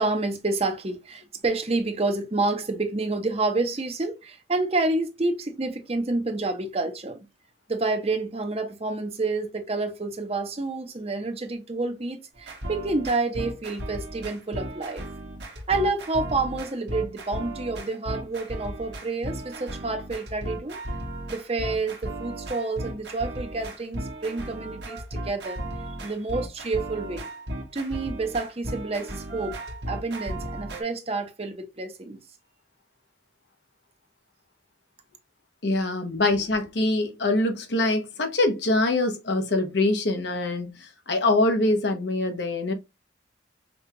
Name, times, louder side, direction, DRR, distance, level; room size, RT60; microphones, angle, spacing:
voice 1, 0.0-7.2 7.7-15.1 15.7-20.8 21.3-25.6 26.0-27.3 27.7-29.5 29.9-32.2, right 3 dB, 35° right, 0.7 m, -28 dB
sound 1, 12.4-30.8, right 1 dB, 65° right, 1.2 m, -35 dB
voice 2, 35.6-42.7, left 2 dB, 70° left, 0.9 m, -24 dB
5.3 x 2.4 x 2.8 m
head